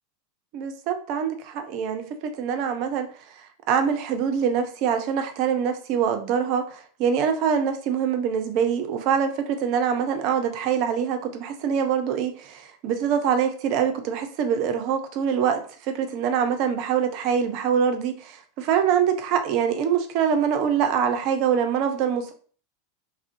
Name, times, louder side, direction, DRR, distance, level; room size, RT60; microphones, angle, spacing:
voice 1, 0.5-2.0 2.4-3.1 3.7-22.3, right 7 dB, 50° right, 0.4 m, -24 dB
2.4 x 2.0 x 2.5 m
hypercardioid pair, 90°, 0 cm